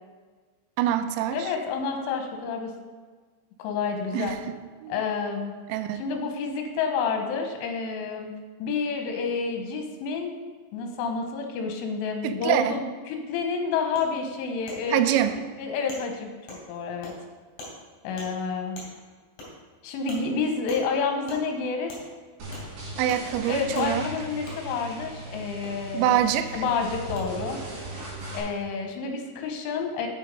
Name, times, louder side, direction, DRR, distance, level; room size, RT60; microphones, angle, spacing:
voice 1, 0.8-1.5 4.1-4.4 4.8-4.9 5.7-6.0 12.2-12.8 14.9-15.4 23.0-24.1 25.9-26.6, right 11 dB, 90° right, 8 dB, 2.6 m, -25 dB
voice 2, 1.3-2.7 3.6-4.4 4.9-5.5 5.9-8.3 8.6-10.3 10.7-15.2 15.6-16.3 16.7-17.1 18.0-18.8 19.8-21.9 23.5-26.2 26.5-27.6 28.3-30.1, left 5 dB, 80° left, 4 dB, 3.4 m, -29 dB
Wood, 14.0-14.1 14.7-14.8 15.3-15.4 15.9-16.0 16.5-16.6 17.0-17.1 17.6-17.7 18.2-18.3 18.8-18.9 19.4-19.5 20.1-20.2 20.7-20.8 21.3-21.4 21.9-22.0 22.5-22.7 23.1-23.2 23.7-23.9 24.5-24.6 25.6-25.7 26.5-26.6 27.2-27.3, left 2 dB, 55° left, 4.0 m, -41 dB
sound 1, 22.4-28.4, right 2 dB, 55° right, 3.4 m, -38 dB
7.7 x 6.4 x 5.3 m, 1.5 s
omnidirectional pair, 5.8 m